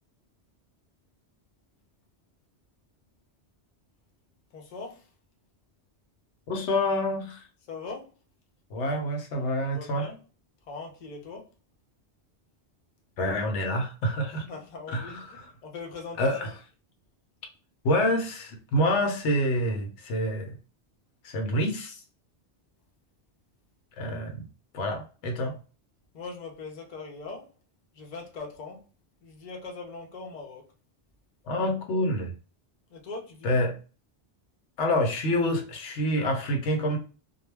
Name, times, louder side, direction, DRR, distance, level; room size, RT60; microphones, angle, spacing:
voice 1, 4.5-5.1 7.7-8.1 9.7-10.2 10.7-11.5 14.5-16.4 26.1-27.5 27.9-28.8 29.2-30.7 32.9-33.6, left 3 dB, 45° left, 0.7 m, -40 dB
voice 2, 6.5-7.4 8.7-10.1 13.2-14.4 14.9-15.2 16.2-16.5 17.8-20.5 21.2-22.0 24.0-24.4 24.7-25.6 31.4-32.3 33.4-33.7 34.8-37.0, left 1 dB, 85° left, 1.0 m, -27 dB
2.2 x 2.2 x 3.1 m
omnidirectional pair, 1.2 m